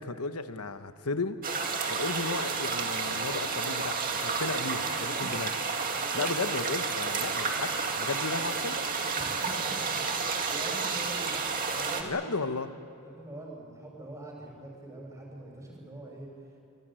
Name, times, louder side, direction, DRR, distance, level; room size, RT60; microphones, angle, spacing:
voice 1, 0.0-1.4 1.9-5.5 6.1-8.8 12.0-12.7, left 3 dB, 80° left, 10 dB, 1.1 m, -34 dB
sound 1, 1.4-12.0, right 4 dB, 40° right, 2.2 m, -31 dB
voice 2, 5.0-5.3 6.0-6.2 9.2-12.5 13.0-16.3, right 2 dB, 15° right, -1 dB, 6.4 m, -44 dB
25.5 x 18.5 x 9.0 m, 2.5 s
head